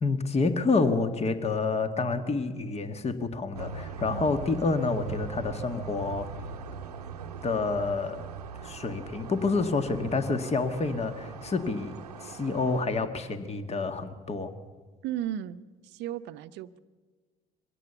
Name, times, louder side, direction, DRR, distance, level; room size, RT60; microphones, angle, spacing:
voice 1, 0.0-6.3 7.4-8.2 8.6-11.9 12.2-14.5, left 3 dB, 35° left, 8 dB, 1.8 m, -28 dB
sound 1, 3.5-12.8, right 5 dB, 90° right, 0.9 m, -41 dB
voice 2, 15.0-16.8, right 11 dB, 65° right, 12 dB, 0.8 m, -35 dB
23.0 x 17.5 x 7.1 m, 1.4 s
hypercardioid pair, 55°, 19 cm